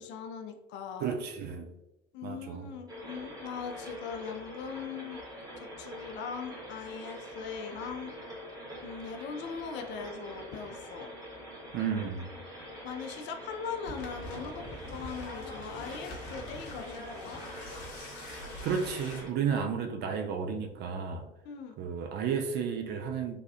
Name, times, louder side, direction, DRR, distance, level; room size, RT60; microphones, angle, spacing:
voice 1, 0.0-1.1 2.1-5.2 5.6-8.1 8.8-11.1 12.8-17.4 21.4-21.8, left 6 dB, 40° left, 5 dB, 0.4 m, -40 dB
voice 2, 1.0-1.7 2.2-2.7 11.7-12.3 18.3-21.3 21.8-23.4, right 6 dB, 35° right, 5 dB, 0.4 m, -32 dB
sound 1, 2.9-19.3, equal, 15° right, 1.1 m, -45 dB
sound 2, 13.9-19.2, left 1 dB, 60° left, 0.8 m, -44 dB
3.3 x 2.3 x 2.5 m, 0.97 s
figure-of-eight pair, 65°, 30 cm